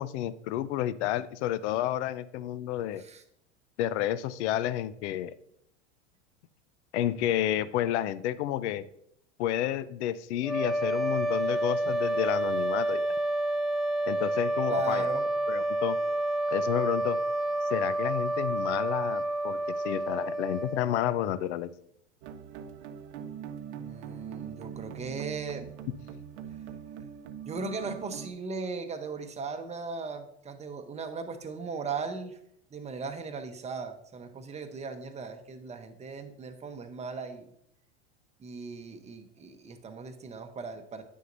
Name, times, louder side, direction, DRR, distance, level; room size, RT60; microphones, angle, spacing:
voice 1, 0.0-3.0 3.8-5.3 6.9-8.8 9.4-13.1 14.1-15.1 15.5-16.0 16.5-17.2 17.7-19.6 19.8-21.7, left 12 dB, 70° left, 16 dB, 0.5 m, -30 dB
sound 1, 10.4-21.4, right 1 dB, ahead, 0.5 m, -29 dB
voice 2, 14.7-15.2 23.8-25.7 27.5-32.4 32.7-37.5 38.4-41.0, right 4 dB, 20° right, 7 dB, 0.8 m, -38 dB
sound 2, 22.2-28.3, right 8 dB, 65° right, 0.7 m, -42 dB
9.5 x 6.4 x 2.6 m, 0.73 s
hypercardioid pair, 105°, 35 cm